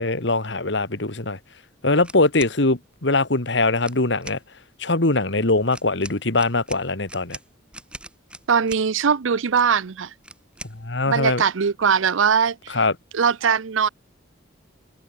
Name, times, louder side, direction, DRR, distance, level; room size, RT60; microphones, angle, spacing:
voice 1, 0.0-1.4 1.8-4.4 4.8-7.4 10.8-11.4 12.7-12.9, left 2 dB, 65° left, 1.8 m, -22 dB
sound 1, 2.0-2.6 3.8-4.4 5.7-8.9 10.2-10.8, right 1 dB, 5° right, 4.7 m, -41 dB
voice 2, 8.5-10.1 11.0-12.8 13.1-13.9, right 6 dB, 80° right, 0.6 m, -21 dB
head